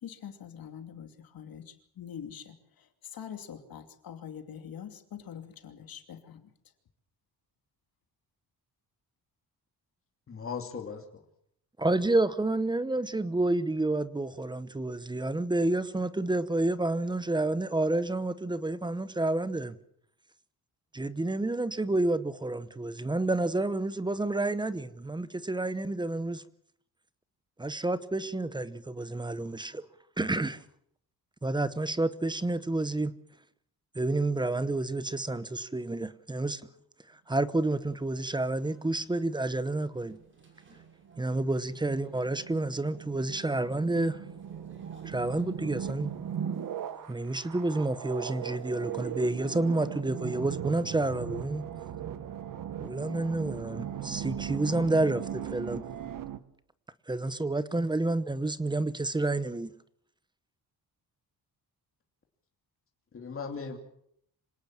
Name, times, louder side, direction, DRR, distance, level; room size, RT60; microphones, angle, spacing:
voice 1, 0.0-6.5, left 8 dB, 65° left, 7 dB, 2.8 m, -44 dB
voice 2, 10.3-11.0 63.1-63.8, left 5 dB, 35° left, 3 dB, 2.8 m, -37 dB
voice 3, 11.8-19.8 20.9-26.4 27.6-29.8 30.2-30.6 31.4-33.1 33.9-36.6 37.3-40.2 41.2-44.2 45.0-46.1 47.1-51.6 52.8-55.8 57.1-59.7, right 2 dB, 10° right, 15 dB, 0.9 m, -29 dB
sound 1, 37.7-49.7, right 3 dB, 30° right, 5.8 m, -57 dB
sound 2, 39.9-56.4, right 9 dB, 55° right, 1.3 m, -38 dB
26.5 x 18.0 x 7.5 m, 0.68 s
wide cardioid pair, 160°, 38 cm